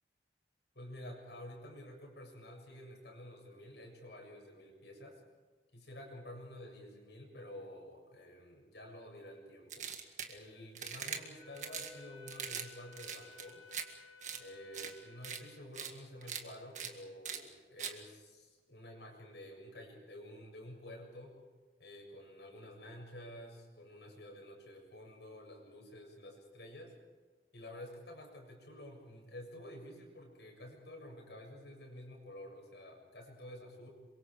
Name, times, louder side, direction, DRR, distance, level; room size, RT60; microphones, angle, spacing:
voice 1, 0.7-5.2 5.7-9.9 10.2-13.6 14.4-21.3 21.8-26.9 27.5-33.9, left 1 dB, 80° left, 1 dB, 7.3 m, -50 dB
sound 1, 9.7-10.3 10.7-11.2 11.6-11.9 12.3-12.7 12.9-13.8 14.2-14.4 14.7-14.9 15.2-15.4 15.7-15.9 16.2-16.4 16.7-16.9 17.2-17.4 17.8-17.9, right 7 dB, 45° right, 1.9 m, -41 dB
Wind instrument woodwind instrument, 11.4-15.9, left 3 dB, 25° left, 3.1 m, -56 dB
27.5 x 24.5 x 5.1 m, 1.3 s
head